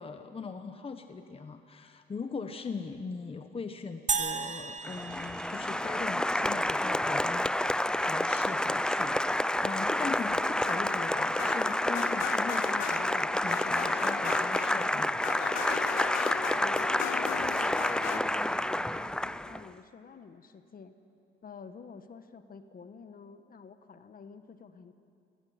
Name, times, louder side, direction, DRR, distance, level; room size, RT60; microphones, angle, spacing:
voice 1, 0.0-15.2, left 4 dB, 30° left, 8 dB, 1.1 m, -40 dB
sound 1, 4.1-6.5, right 6 dB, 35° right, 1.0 m, -35 dB
Applause, 4.8-19.7, left 1 dB, 5° left, 0.4 m, -29 dB
sound 2, 10.0-18.2, left 15 dB, 90° left, 0.5 m, -38 dB
voice 2, 16.6-20.9 21.4-24.9, left 5 dB, 45° left, 9 dB, 1.3 m, -49 dB
19.0 x 17.0 x 9.5 m, 2.5 s
cardioid pair, 90°, 20 cm